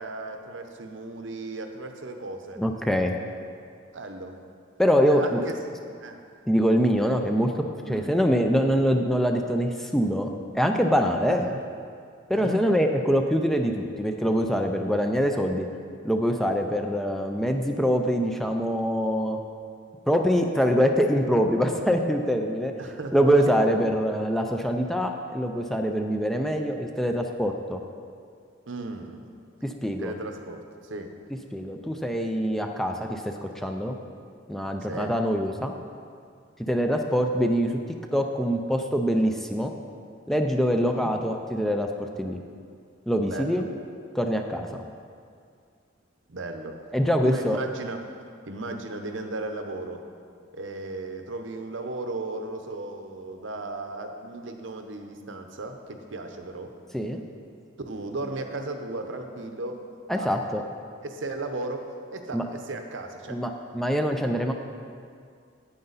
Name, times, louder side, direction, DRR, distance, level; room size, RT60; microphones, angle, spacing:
voice 1, 0.0-2.6 3.9-4.3 5.1-5.5 6.0-6.2 7.9-8.1 11.3-11.6 12.3-12.6 22.8-23.7 28.7-29.3 30.0-31.1 34.9-35.1 40.8-41.1 43.3-43.7 46.3-46.8 47.2-48.0 48.5-50.0 50.5-56.7 57.9-59.8 60.1-60.3 61.0-63.4, right 2 dB, 70° right, 5 dB, 0.8 m, -35 dB
voice 2, 2.6-3.2 4.8-5.4 6.5-10.3 10.5-11.5 12.3-15.7 16.0-19.4 20.1-22.7 23.1-27.8 29.6-30.1 31.5-33.9 34.5-35.7 36.7-37.7 38.1-39.7 40.3-41.9 42.2-42.4 43.1-43.7 44.1-44.7 46.9-47.6 56.9-57.2 60.1-60.6 62.3-62.4 63.3-64.5, equal, ahead, 4 dB, 0.4 m, -24 dB
9.4 x 8.8 x 4.0 m, 2.2 s
head